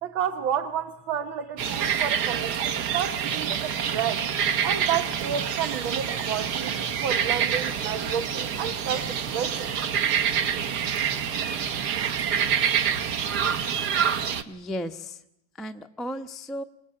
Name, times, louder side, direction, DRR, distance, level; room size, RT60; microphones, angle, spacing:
voice 1, 0.0-4.3 4.6-9.8, right 8 dB, 75° right, 6 dB, 2.0 m, -31 dB
sound 1, 1.6-14.4, right 8 dB, 55° right, 1.6 m, -27 dB
voice 2, 14.5-15.2 15.5-16.6, equal, ahead, 6 dB, 0.5 m, -34 dB
27.0 x 19.0 x 8.8 m, 0.83 s
omnidirectional pair, 2.2 m